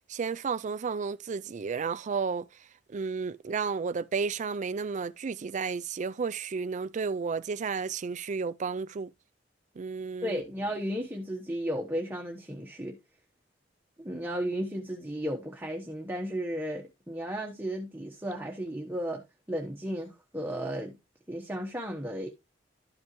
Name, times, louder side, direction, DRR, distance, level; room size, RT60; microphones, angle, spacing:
voice 1, 0.1-9.1 9.8-10.4, right 5 dB, 40° right, 0.4 m, -32 dB
voice 2, 10.2-13.0 14.0-21.0 21.3-22.3, equal, 10° right, 1.1 m, -34 dB
12.5 x 5.3 x 3.0 m
head